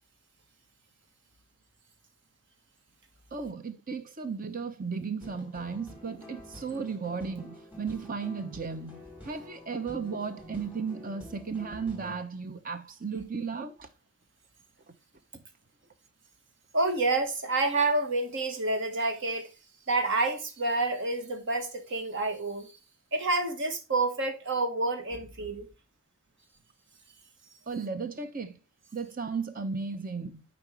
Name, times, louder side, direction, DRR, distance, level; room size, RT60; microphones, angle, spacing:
voice 1, 3.3-13.9 27.7-28.6 28.9-30.4, right 5 dB, 45° right, 0.9 m, -35 dB
sound 1, 5.2-12.2, left 1 dB, 10° right, 4.3 m, -48 dB
voice 2, 16.7-19.5 19.9-22.7 23.1-25.7, right 2 dB, 60° right, 1.5 m, -28 dB
8.9 x 5.2 x 3.3 m
head